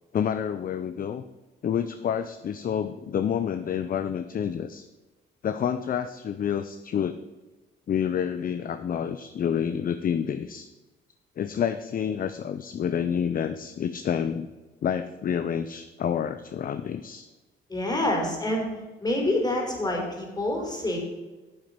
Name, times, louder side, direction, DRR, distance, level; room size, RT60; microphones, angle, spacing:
voice 1, 0.1-1.2 1.6-4.9 5.4-7.2 7.9-10.7 11.4-14.5 14.8-17.3, left 8 dB, 45° left, 11 dB, 0.5 m, -28 dB
voice 2, 17.7-18.7 19.0-21.0, left 1 dB, 20° left, 0 dB, 3.5 m, -27 dB
9.1 x 7.6 x 5.2 m, 1.2 s
cardioid pair, 90°, 20 cm